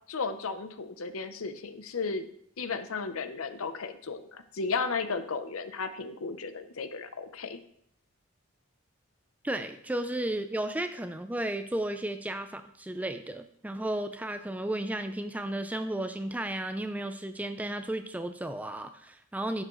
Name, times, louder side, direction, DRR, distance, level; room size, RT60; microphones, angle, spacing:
voice 1, 0.1-2.3 2.6-7.6, left 4 dB, 75° left, 10 dB, 0.7 m, -34 dB
voice 2, 9.4-19.6, right 1 dB, 5° right, 8 dB, 0.4 m, -33 dB
11.0 x 7.6 x 3.1 m, 0.67 s
head